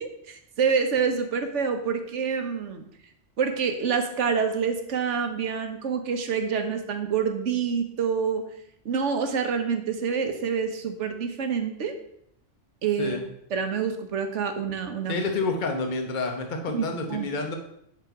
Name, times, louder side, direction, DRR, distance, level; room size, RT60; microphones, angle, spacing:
voice 1, 0.0-2.8 3.4-8.4 8.8-11.9 12.8-13.2 13.5-15.2 16.7-17.3, right 6 dB, 75° right, 7 dB, 1.2 m, -27 dB
voice 2, 15.1-17.6, left 3 dB, 40° left, 4 dB, 1.1 m, -29 dB
10.0 x 4.1 x 4.7 m, 0.73 s
omnidirectional pair, 1.3 m